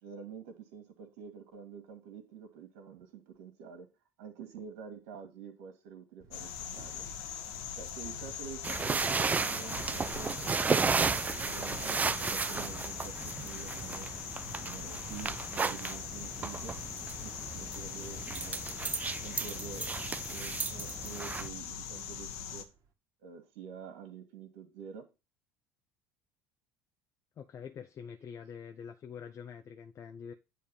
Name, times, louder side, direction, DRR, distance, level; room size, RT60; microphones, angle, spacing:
voice 1, 0.0-3.9 4.2-7.0 7.8-10.6 11.4-14.1 14.6-16.8 17.2-18.7 19.2-22.7 23.2-25.1, right 6 dB, 75° right, 1.9 m, -48 dB
sound 1, 6.2-22.9, right 4 dB, 45° right, 1.9 m, -60 dB
sound 2, 6.3-22.6, left 8 dB, 75° left, 1.3 m, -42 dB
sound 3, 8.6-21.5, right 5 dB, 20° right, 0.4 m, -34 dB
voice 2, 27.4-30.3, left 7 dB, 40° left, 0.8 m, -45 dB
9.5 x 3.5 x 7.0 m
hypercardioid pair, 75°, 8 cm